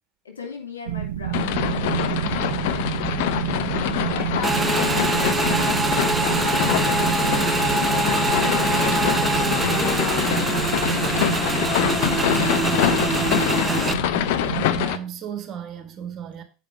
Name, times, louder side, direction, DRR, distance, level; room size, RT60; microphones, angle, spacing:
voice 1, 0.2-2.9 3.9-12.4, left 5 dB, 80° left, 3.0 m, -41 dB
sound 1, 0.9-14.9, right 12 dB, 70° right, 0.5 m, -30 dB
sound 2, 1.3-15.0, left 12 dB, 60° left, 0.7 m, -25 dB
Motorcycle / Engine, 4.4-13.9, right 3 dB, 15° right, 0.7 m, -24 dB
voice 2, 14.4-16.4, right 9 dB, 40° right, 2.1 m, -34 dB
8.3 x 5.1 x 4.8 m
figure-of-eight pair, 80°, 0 cm